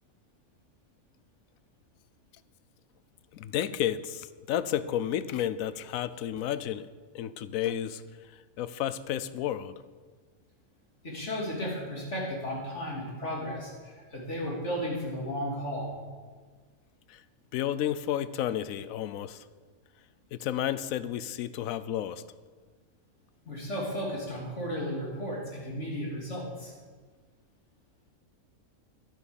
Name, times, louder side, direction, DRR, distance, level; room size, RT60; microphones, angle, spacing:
voice 1, 3.3-6.9 7.1-8.0 8.6-9.8 17.1-17.2 17.5-19.4 20.3-22.2, left 11 dB, 75° left, 14 dB, 1.0 m, -31 dB
voice 2, 11.0-15.9 23.4-26.7, equal, 55° left, -3 dB, 3.4 m, -34 dB
11.5 x 10.5 x 7.0 m, 1.5 s
omnidirectional pair, 1.5 m